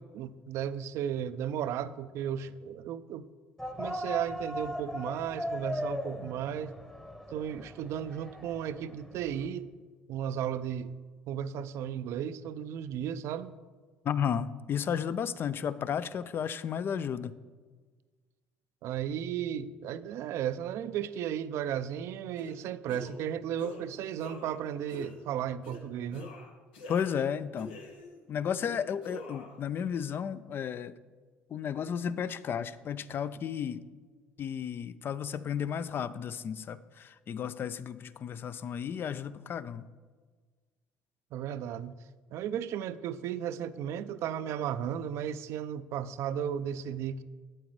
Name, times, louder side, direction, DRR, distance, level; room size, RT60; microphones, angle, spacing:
voice 1, 0.0-3.3 3.8-6.8 7.3-9.7 10.1-11.0 11.3-13.5 18.8-26.3 41.3-41.9 42.3-47.2, right 9 dB, 65° right, 14 dB, 0.4 m, -35 dB
sound 1, 3.6-9.5, equal, 10° left, 1.0 m, -38 dB
voice 2, 14.0-17.3 26.9-27.7 28.3-30.9 31.5-33.8 34.4-39.8, left 8 dB, 45° left, 15 dB, 0.4 m, -33 dB
sound 2, 22.4-22.6 22.9-23.3 23.6-23.8 24.2-24.6 24.9-25.2 25.6-25.8 26.1-27.3 27.6-28.2 28.6-29.6, left 3 dB, 90° left, 1.0 m, -45 dB
8.7 x 8.4 x 3.2 m, 1.5 s
hypercardioid pair, 70°, 5 cm